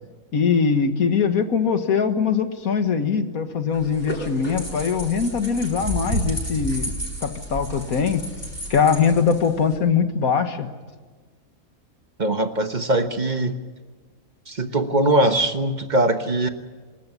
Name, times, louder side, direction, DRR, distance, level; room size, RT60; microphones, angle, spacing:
voice 1, 0.3-6.9 7.2-8.3 8.7-10.7, left 6 dB, 80° left, 8 dB, 2.0 m, -22 dB
sound 1, 3.7-9.8, equal, 15° left, 8.0 m, -31 dB
voice 2, 12.2-13.6 14.5-16.5, right 1 dB, 35° right, 7 dB, 1.3 m, -21 dB
26.0 x 14.0 x 9.7 m, 1.4 s
omnidirectional pair, 1.5 m